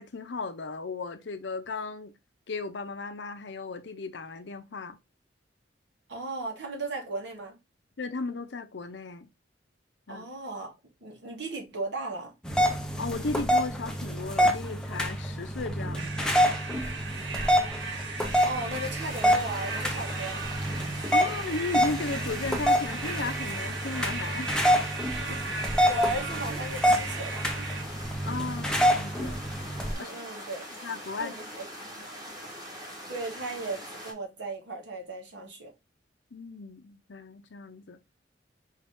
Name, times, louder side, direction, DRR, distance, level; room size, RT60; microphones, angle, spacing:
voice 1, 0.0-2.1 2.5-5.0 8.0-9.3 10.1-10.3 13.0-16.3 21.1-24.5 28.2-29.4 30.0-30.1 30.8-31.3 36.3-38.0, left 3 dB, 70° left, 0.7 m, -35 dB
voice 2, 6.1-7.6 10.1-10.7 11.0-12.3 18.4-21.0 25.1-27.7 29.9-30.6 31.2-31.7 32.0-32.1 33.1-35.7, right 2 dB, 70° right, 1.5 m, -36 dB
sound 1, 12.4-29.9, equal, 5° left, 0.7 m, -27 dB
sound 2, 15.9-27.8, right 4 dB, 90° right, 1.1 m, -37 dB
sound 3, 19.0-34.1, equal, 20° right, 1.6 m, -43 dB
4.8 x 2.8 x 3.4 m
head